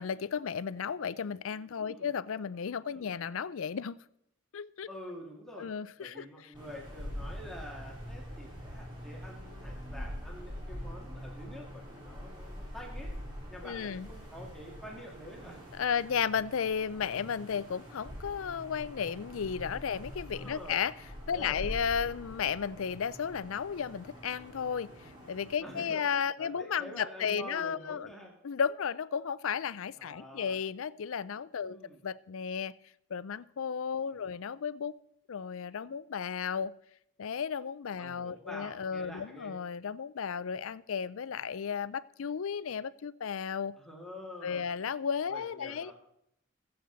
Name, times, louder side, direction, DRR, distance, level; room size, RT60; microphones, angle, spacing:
voice 1, 0.0-4.0 4.5-4.9 5.6-6.2 13.6-14.1 15.7-20.9 21.3-24.9 25.3-28.1 28.4-31.8 32.0-32.7 33.1-34.9 35.3-36.7 37.2-43.7 44.4-45.9, left 7 dB, 70° left, 18 dB, 0.4 m, -34 dB
voice 2, 4.9-5.7 6.0-13.1 13.5-15.6 20.3-20.8 21.3-21.8 25.6-26.0 26.4-28.3 30.0-30.6 31.6-32.0 34.0-34.2 38.0-39.5 43.8-44.6 45.3-45.9, left 1 dB, ahead, -2 dB, 2.1 m, -47 dB
sound 1, 6.5-25.5, equal, 20° right, 3.0 m, -44 dB
21.0 x 7.9 x 4.0 m, 0.78 s
head